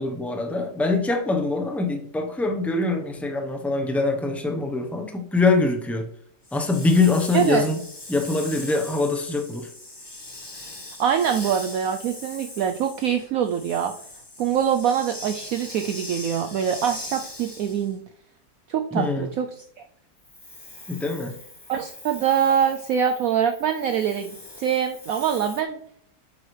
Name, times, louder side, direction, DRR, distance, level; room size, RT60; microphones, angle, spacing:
voice 1, 0.0-6.1 6.5-7.8 8.1-9.7 18.9-19.3 20.9-21.4, left 3 dB, ahead, 3 dB, 0.4 m, -23 dB
Hiss, 6.4-17.9 20.2-25.6, left 2 dB, 20° left, 0.9 m, -41 dB
voice 2, 7.3-7.7 11.0-13.9 14.4-18.0 18.7-19.5 21.7-25.8, right 8 dB, 70° right, 6 dB, 0.8 m, -24 dB
8.5 x 7.7 x 3.2 m, 0.66 s
omnidirectional pair, 1.9 m